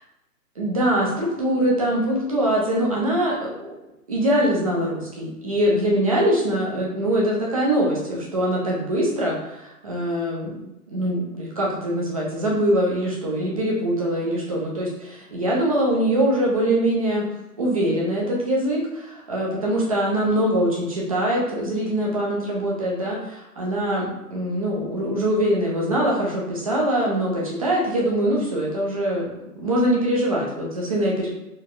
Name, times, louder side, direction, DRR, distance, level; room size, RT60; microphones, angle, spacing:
voice 1, 0.6-3.7 4.1-17.2 17.6-29.3 29.6-31.3, right 1 dB, 25° right, -3 dB, 0.6 m, -23 dB
3.9 x 3.3 x 2.5 m, 0.90 s
figure-of-eight pair, 135°, 48 cm